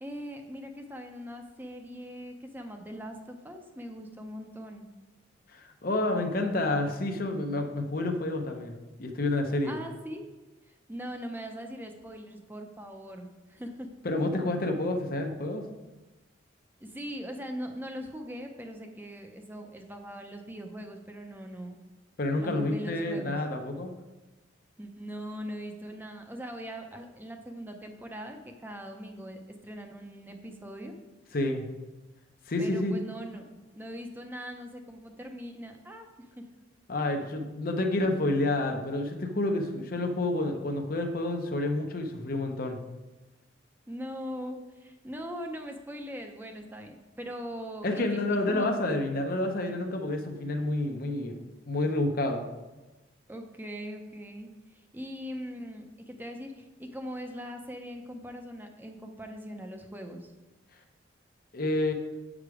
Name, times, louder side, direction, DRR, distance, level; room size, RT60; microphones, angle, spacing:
voice 1, 0.0-4.9 9.6-10.3 10.7-13.9 16.8-21.8 22.4-23.4 24.8-31.0 32.6-33.5 33.7-36.5 43.9-48.0 48.5-48.7 53.3-60.3, equal, 10° right, 4 dB, 0.6 m, -41 dB
voice 2, 5.5-9.8 14.0-15.7 22.2-23.9 31.3-31.6 32.5-33.0 36.9-42.8 47.8-52.4 61.5-61.9, left 2 dB, 45° left, 4 dB, 0.7 m, -29 dB
8.0 x 5.0 x 4.8 m, 1.1 s
head